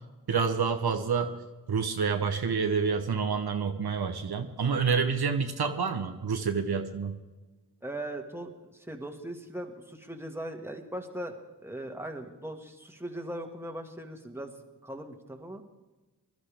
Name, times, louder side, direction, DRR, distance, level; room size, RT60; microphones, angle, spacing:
voice 1, 0.3-1.4 1.7-7.2, right 5 dB, 75° right, 5 dB, 1.1 m, -28 dB
voice 2, 7.8-11.4 11.6-14.5 14.8-15.6, right 1 dB, 5° right, 3 dB, 1.8 m, -39 dB
22.0 x 12.0 x 3.5 m, 1.2 s
cardioid pair, 50°, 39 cm